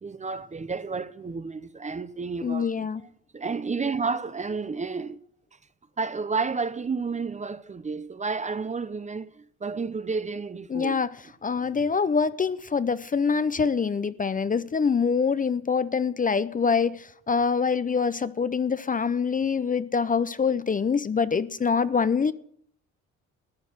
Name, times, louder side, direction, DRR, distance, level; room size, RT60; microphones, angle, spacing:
voice 1, 0.0-2.9 3.3-5.2 6.0-11.1, right 4 dB, 25° right, 0.6 m, -31 dB
voice 2, 2.4-3.0 10.7-11.1 11.4-22.3, left 5 dB, 25° left, 0.6 m, -25 dB
14.0 x 9.9 x 6.5 m
cardioid pair, 90°, 30 cm